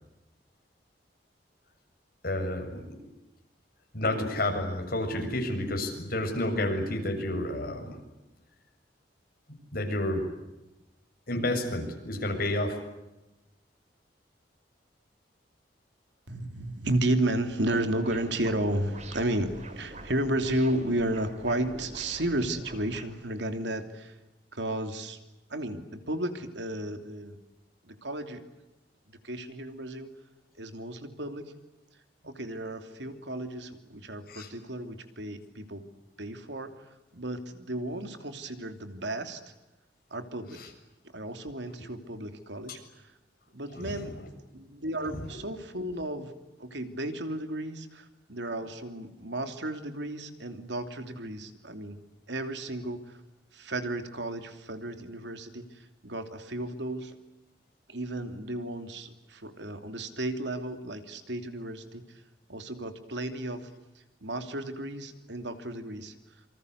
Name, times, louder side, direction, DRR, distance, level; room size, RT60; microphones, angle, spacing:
voice 1, 2.2-3.0 3.9-8.0 9.7-10.2 11.3-12.8 34.3-34.5 40.6-40.7 43.7-44.2 45.1-45.2, left 1 dB, 55° left, 4 dB, 7.1 m, -30 dB
voice 2, 16.3-24.1 24.5-25.2 25.5-27.4 27.8-28.4 29.2-30.1 30.6-31.5 32.2-35.8 36.2-36.7 37.1-39.4 40.1-40.6 41.1-42.8 43.5-44.2 44.5-46.3 46.6-52.0 52.3-53.2 53.5-57.2 57.9-62.0 62.5-63.7 64.2-66.1, right 1 dB, 75° right, 8 dB, 3.1 m, -33 dB
sound 1, 17.7-23.0, right 1 dB, 40° right, 3.9 m, -44 dB
27.5 x 26.0 x 8.2 m, 0.98 s
head